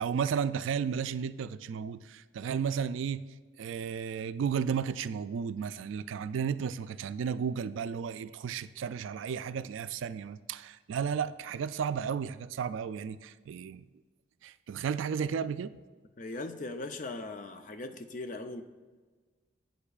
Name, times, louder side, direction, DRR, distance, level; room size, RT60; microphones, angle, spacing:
voice 1, 0.0-3.2 3.6-13.8 14.4-15.8, right 7 dB, 80° right, 14 dB, 0.3 m, -33 dB
voice 2, 16.2-18.6, left 2 dB, 40° left, 8 dB, 0.5 m, -39 dB
11.5 x 7.9 x 2.4 m, 1.4 s
head